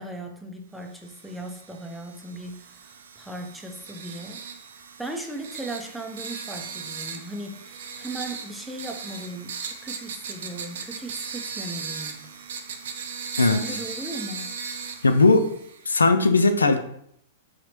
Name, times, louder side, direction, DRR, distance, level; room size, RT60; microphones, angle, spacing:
voice 1, 0.0-4.4 5.0-12.2 13.4-14.5, right 1 dB, ahead, 2 dB, 0.6 m, -37 dB
sound 1, 1.0-15.9, right 5 dB, 70° right, 0.4 m, -38 dB
voice 2, 15.0-15.5 15.9-16.8, left 3 dB, 90° left, 8 dB, 0.3 m, -18 dB
3.9 x 2.8 x 3.1 m, 0.71 s
hypercardioid pair, 105°, 0 cm